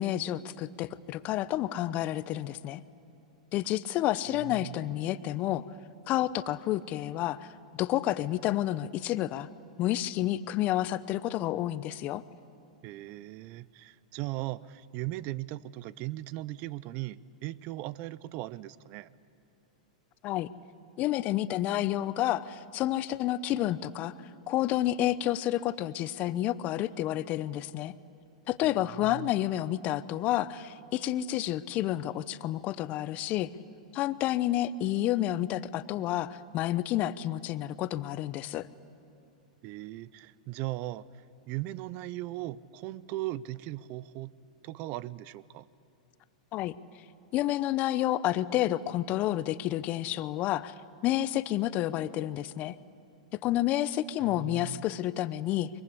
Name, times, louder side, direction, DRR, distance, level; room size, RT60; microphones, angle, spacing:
voice 1, 0.0-2.8 3.5-5.6 6.1-7.5 7.8-9.5 9.8-12.2 20.2-20.5 21.0-24.1 24.5-27.9 28.5-33.5 33.9-38.7 46.5-46.7 47.3-50.7 51.0-52.8 53.3-55.7, left 13 dB, 40° left, 16 dB, 0.9 m, -30 dB
voice 2, 4.3-4.8 12.8-19.1 28.6-29.3 39.6-41.1 41.5-44.3 44.6-45.7 54.2-54.8, right 16 dB, 45° right, 20 dB, 0.7 m, -38 dB
23.0 x 22.5 x 9.9 m, 2.7 s
hypercardioid pair, 115°, 4 cm